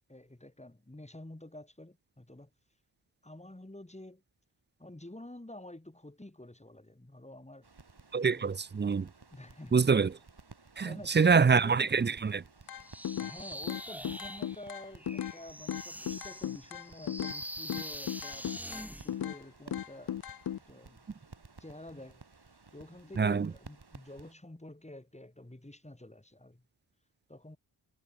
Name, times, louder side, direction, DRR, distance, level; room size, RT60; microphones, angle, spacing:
voice 1, 0.1-2.5 3.2-4.2 4.8-7.7 8.2-8.5 9.3-10.0 10.8-12.0 13.2-20.2 20.5-21.0 21.6-22.2 22.7-26.6 27.3-27.6, left 1 dB, 15° left, 2.6 m, -49 dB
sound 1, 7.6-24.3, right 4 dB, 50° right, 5.3 m, -56 dB
voice 2, 8.1-9.1 9.7-10.1 10.8-10.9 11.1-12.4 23.2-23.5, right 5 dB, 25° right, 0.4 m, -25 dB
sound 2, 12.7-13.4 13.7-15.4 15.7-17.4 17.7-19.4 19.7-20.6, left 10 dB, 50° left, 0.5 m, -36 dB
sound 3, 12.8-19.1, equal, 5° right, 2.0 m, -44 dB
cardioid pair, 50°, 48 cm